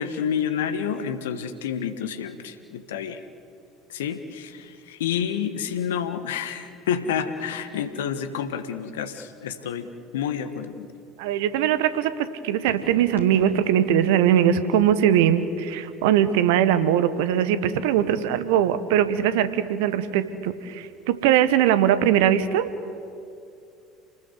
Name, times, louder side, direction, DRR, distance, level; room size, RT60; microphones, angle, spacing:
voice 1, 0.0-3.2 3.9-9.9 10.1-10.9, left 8 dB, 70° left, 10 dB, 1.5 m, -29 dB
sound 1, 9.6-9.9 10.7-12.0 12.6-13.6 13.8-15.2 16.1-16.2, right 1 dB, 85° right, 3.8 m, -43 dB
voice 2, 11.2-12.1 12.4-22.7, right 10 dB, 65° right, 13 dB, 1.3 m, -21 dB
28.5 x 20.0 x 8.0 m, 2.5 s
figure-of-eight pair, 65°, 0 cm